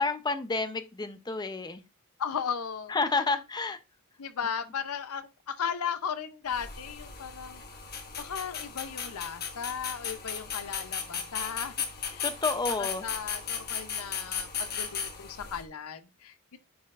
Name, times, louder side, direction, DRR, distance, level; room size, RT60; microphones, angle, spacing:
voice 1, 0.0-1.8 2.9-3.8 12.2-13.0, left 3 dB, 20° left, 0.6 m, -30 dB
voice 2, 2.2-2.9 4.2-12.3 12.7-16.6, left 7 dB, 70° left, 0.6 m, -36 dB
sound 1, 6.5-15.6, left 7 dB, 45° left, 1.2 m, -36 dB
10.0 x 4.3 x 2.4 m
head